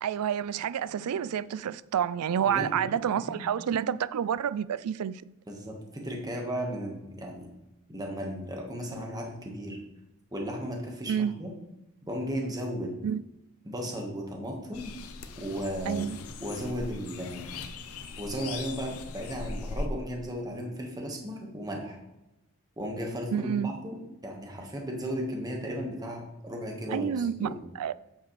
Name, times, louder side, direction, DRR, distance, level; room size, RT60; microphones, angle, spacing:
voice 1, 0.0-5.2 11.1-11.3 13.0-13.2 15.9-16.2 23.3-23.7 26.9-27.9, right 8 dB, 85° right, 0.4 m, -29 dB
voice 2, 5.5-7.5 7.9-9.8 10.3-11.5 12.1-13.0 13.6-14.9 15.4-16.1 16.4-17.5 18.2-22.0 22.8-24.0 24.2-27.6, equal, 15° right, 1.5 m, -35 dB
sound 1, 14.7-19.9, left 3 dB, 70° left, 0.7 m, -40 dB
8.3 x 7.3 x 3.3 m
head